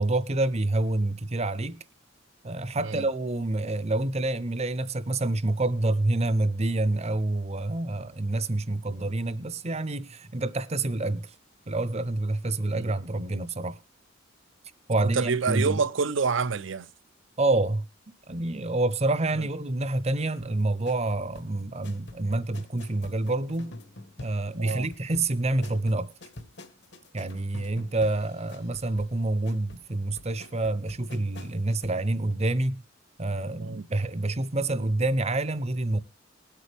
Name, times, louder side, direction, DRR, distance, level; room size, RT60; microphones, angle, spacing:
voice 1, 0.0-1.8 2.4-11.3 11.7-13.8 14.9-15.8 17.4-17.8 18.3-23.7 24.2-26.1 27.1-32.8 33.2-36.0, right 2 dB, 35° right, 0.8 m, -27 dB
voice 2, 15.0-16.9 19.4-19.5 24.6-24.9 33.6-33.9, right 5 dB, 70° right, 0.6 m, -28 dB
sound 1, 20.4-32.0 32.3-32.4, left 1 dB, 60° left, 1.5 m, -47 dB
20.0 x 8.4 x 3.5 m
head